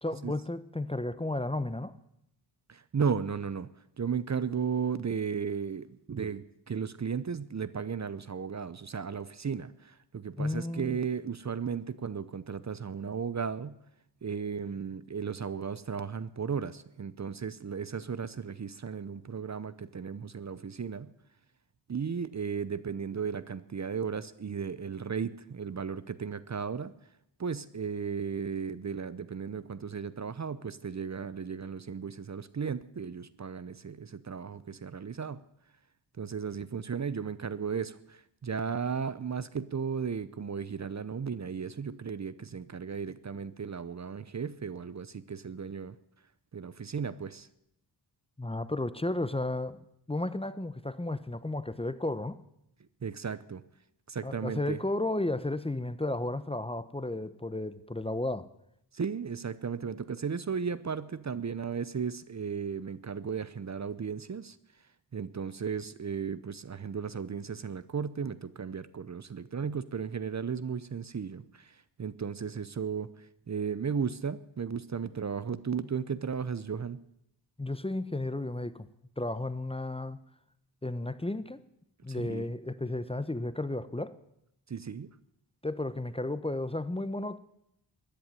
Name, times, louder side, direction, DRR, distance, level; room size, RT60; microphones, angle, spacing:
voice 1, 0.0-1.9 10.4-11.0 48.4-49.8 50.1-52.4 54.2-58.5 77.6-78.9 79.2-80.2 80.8-81.6 82.0-84.2 85.6-87.4, left 2 dB, 10° left, 14 dB, 0.8 m, -33 dB
voice 2, 2.7-3.7 4.0-13.8 14.2-21.1 21.9-26.9 27.4-35.4 36.2-46.0 46.5-47.5 53.0-53.6 54.1-54.8 58.9-64.6 65.1-77.0 82.1-82.5 84.7-85.1, right 6 dB, 35° right, 16 dB, 0.8 m, -35 dB
14.0 x 10.5 x 9.1 m, 0.79 s
cardioid pair, 55°, 46 cm